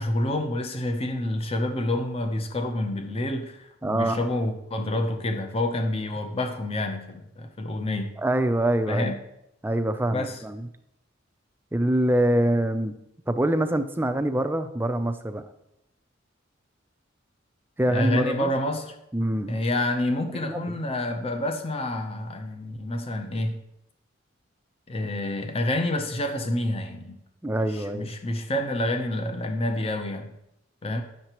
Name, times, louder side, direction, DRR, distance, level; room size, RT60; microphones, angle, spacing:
voice 1, 0.0-8.1 8.9-9.2 10.1-10.4 17.9-18.9 19.5-23.6 24.9-27.2 27.7-30.3 30.8-31.0, left 1 dB, 30° left, 5 dB, 0.6 m, -28 dB
voice 2, 3.8-4.2 8.2-9.1 9.6-10.7 11.7-12.9 13.3-15.4 17.8-18.5 19.1-19.6 20.4-20.6 27.4-28.1, right 1 dB, 10° right, 8 dB, 0.4 m, -24 dB
9.5 x 6.6 x 3.0 m, 0.82 s
head